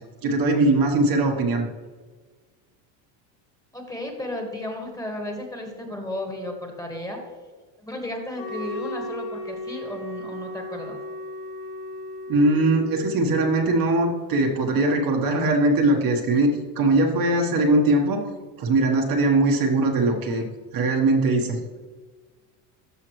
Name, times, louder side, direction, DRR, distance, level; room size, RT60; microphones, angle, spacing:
voice 1, 0.2-1.6 12.3-18.2 18.6-20.4 20.7-21.6, right 2 dB, 45° right, 2 dB, 1.3 m, -21 dB
voice 2, 3.7-7.2 7.8-11.0, left 1 dB, 5° left, 2 dB, 1.5 m, -34 dB
Wind instrument woodwind instrument, 8.3-14.2, left 2 dB, 45° left, 1.9 m, -36 dB
12.5 x 5.7 x 3.1 m, 1.4 s
supercardioid pair, 120°, 49 cm